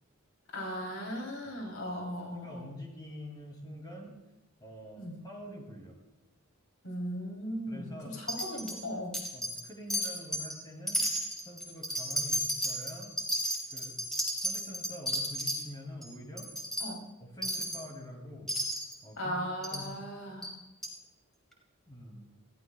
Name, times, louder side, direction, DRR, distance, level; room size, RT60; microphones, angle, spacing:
voice 1, 0.5-2.7 5.0-5.2 6.8-9.2 16.8-17.0 19.2-20.5, equal, 85° left, 0 dB, 3.5 m, -37 dB
voice 2, 2.2-4.1 4.6-6.0 7.7-8.6 9.3-11.0 11.4-13.1 13.7-14.0 14.3-16.5 17.2-18.5 19.0-19.4 19.7-19.9 21.9-22.3, equal, 20° left, 0 dB, 2.7 m, -46 dB
Wind chime, 8.3-8.8 9.1-9.6 9.9-10.5 10.9-15.6 16.0-16.1 16.4-16.9 17.4-17.8 18.5-18.9 19.6-19.8 20.4-20.5 20.8-20.9, equal, ahead, 3.1 m, -33 dB
20.5 x 15.0 x 2.4 m, 1.0 s
head